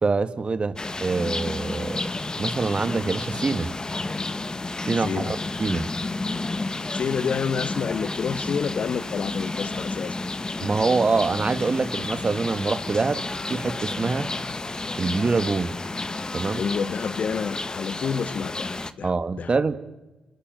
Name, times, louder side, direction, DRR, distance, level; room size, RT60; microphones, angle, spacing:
voice 1, 0.0-2.0 2.4-3.7 4.8-5.9 10.6-13.2 13.5-14.3 15.0-15.8 16.3-16.6 19.0-19.8, right 4 dB, 40° right, 2.0 m, -25 dB
sound 1, 0.8-18.9, left 2 dB, 25° left, 1.6 m, -31 dB
voice 2, 5.0-5.4 6.9-10.2 16.5-19.5, left 6 dB, 55° left, 1.3 m, -29 dB
30.0 x 20.5 x 7.9 m
hypercardioid pair, 45°, 3 cm